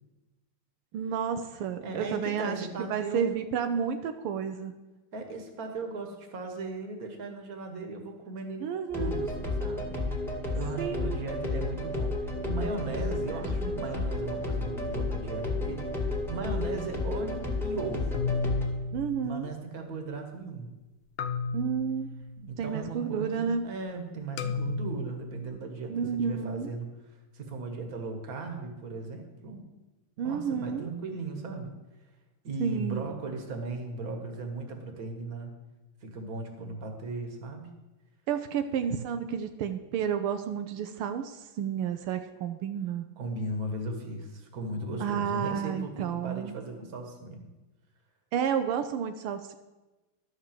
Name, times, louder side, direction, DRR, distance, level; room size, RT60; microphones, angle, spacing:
voice 1, 0.9-4.8 8.6-9.3 10.8-11.2 13.6-14.1 18.9-19.5 21.5-23.6 25.9-26.7 30.2-30.9 32.6-33.1 38.3-43.1 45.0-46.5 48.3-49.5, right 7 dB, 85° right, 7 dB, 1.6 m, -31 dB
voice 2, 1.8-3.3 5.1-9.9 10.5-18.3 19.2-20.7 22.5-26.9 27.3-29.7 30.2-31.7 32.4-35.5 36.0-37.7 43.2-47.5, right 3 dB, 45° right, 4 dB, 1.8 m, -37 dB
sound 1, 8.9-18.7, left 2 dB, ahead, 1.6 m, -32 dB
sound 2, 15.4-16.2 18.1-19.9 21.2-22.7 24.4-25.5, left 4 dB, 75° left, 1.4 m, -34 dB
12.0 x 5.9 x 7.5 m, 1.1 s
omnidirectional pair, 2.4 m